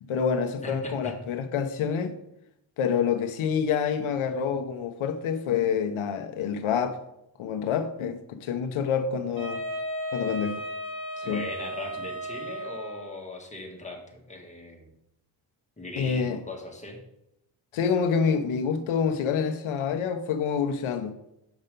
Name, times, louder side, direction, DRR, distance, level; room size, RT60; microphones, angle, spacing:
voice 1, 0.0-2.2 2.8-7.0 7.4-9.6 10.1-10.5 11.2-11.4 16.0-16.4 17.7-21.1, left 6 dB, 90° left, 0.8 m, -27 dB
voice 2, 0.6-1.1 11.2-14.9 15.8-17.0, left 2 dB, 15° left, 1.7 m, -39 dB
Wind instrument woodwind instrument, 9.4-13.2, equal, 70° right, 2.7 m, -35 dB
7.1 x 5.5 x 5.2 m
cardioid pair, 110°, 47 cm